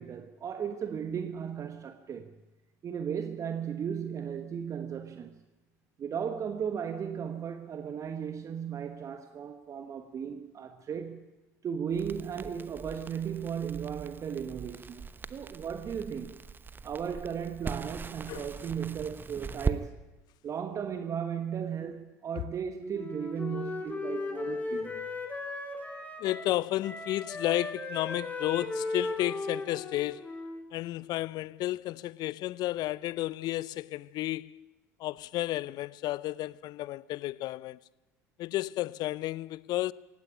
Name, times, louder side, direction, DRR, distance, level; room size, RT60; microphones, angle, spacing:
voice 1, 0.0-2.3 2.8-5.4 6.0-11.3 11.6-16.4 16.8-20.0 20.4-25.1, right 7 dB, 40° right, 1.3 m, -36 dB
Crackle, 11.9-19.8, right 5 dB, 25° right, 1.0 m, -40 dB
Wind instrument woodwind instrument, 22.9-26.6 26.8-30.7, left 3 dB, 20° left, 4.2 m, -36 dB
voice 2, 26.2-30.3 30.7-34.6 35.0-37.8 38.4-39.9, left 16 dB, 55° left, 0.6 m, -32 dB
18.0 x 16.0 x 9.9 m
hypercardioid pair, 70°, 8 cm